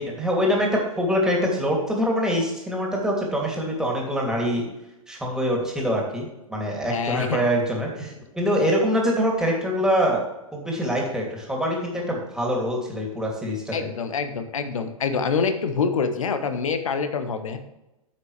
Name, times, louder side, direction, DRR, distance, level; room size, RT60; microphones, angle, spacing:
voice 1, 0.0-4.6 5.1-10.2 10.5-13.9, equal, 5° right, -1 dB, 2.8 m, -24 dB
voice 2, 6.9-7.5 13.7-17.6, left 5 dB, 65° left, 8 dB, 1.2 m, -26 dB
11.0 x 7.5 x 3.3 m, 0.96 s
figure-of-eight pair, 105°, 18 cm